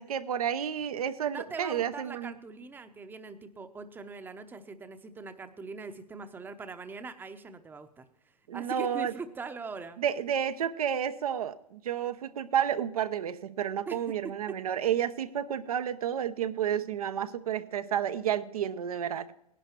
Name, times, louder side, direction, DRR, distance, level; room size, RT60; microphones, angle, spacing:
voice 1, 0.0-2.3 8.5-9.1 10.0-19.3, right 9 dB, 65° right, 10 dB, 0.8 m, -31 dB
voice 2, 1.3-8.1 8.5-10.0 13.9-14.6, right 4 dB, 10° right, 9 dB, 0.8 m, -42 dB
18.0 x 11.0 x 4.5 m, 0.78 s
hypercardioid pair, 110°, 20 cm